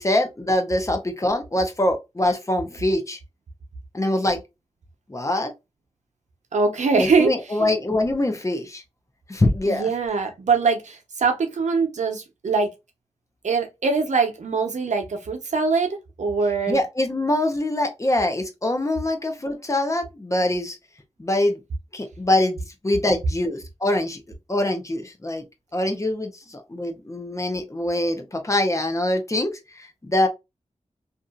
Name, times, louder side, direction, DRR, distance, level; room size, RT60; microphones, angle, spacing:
voice 1, 0.0-3.2 3.9-4.4 5.1-5.5 7.0-8.8 9.3-9.9 16.7-20.8 21.2-21.6 21.9-24.2 24.5-25.4 25.7-30.3, left 1 dB, 25° left, 0.7 m, -24 dB
voice 2, 6.5-7.6 9.6-12.7 13.4-16.8, right 4 dB, 80° right, 0.7 m, -23 dB
2.7 x 2.6 x 2.3 m
wide cardioid pair, 65°, 12 cm